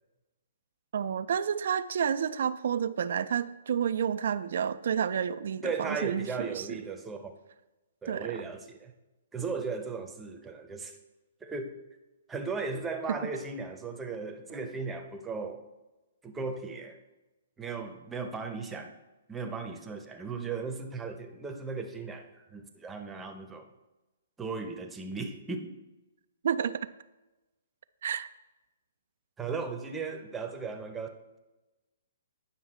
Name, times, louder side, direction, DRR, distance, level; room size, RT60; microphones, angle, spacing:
voice 1, 0.9-6.8 8.1-8.4 13.1-13.2 26.4-26.8 28.0-28.3, right 8 dB, 65° right, 12 dB, 0.3 m, -30 dB
voice 2, 5.6-7.3 8.0-8.9 9.3-11.0 11.4-11.8 12.3-15.6 16.2-17.0 17.6-18.9 19.3-23.7 24.4-25.7 29.4-31.1, right 4 dB, 10° right, 5 dB, 0.8 m, -36 dB
9.5 x 5.7 x 4.3 m, 1.1 s
hypercardioid pair, 145°, 0 cm